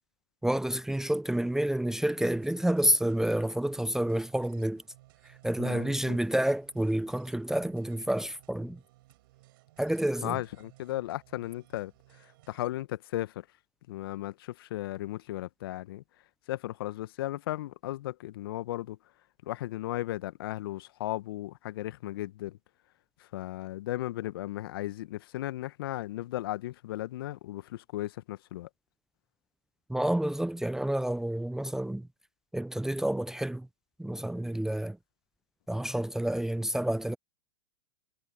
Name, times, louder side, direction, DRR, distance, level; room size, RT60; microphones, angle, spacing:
voice 1, 0.4-4.8 5.4-8.8 9.8-10.3 29.9-32.1 32.5-33.7 34.0-35.0 35.7-37.2, right 1 dB, 5° right, 0.7 m, -29 dB
sound 1, 2.1-12.8, right 18 dB, 60° right, 5.4 m, -59 dB
voice 2, 5.6-6.2 10.2-13.5 13.9-16.0 16.5-19.0 19.4-22.6 23.2-28.7, left 15 dB, 60° left, 1.4 m, -36 dB
hypercardioid pair, 100°, 13 cm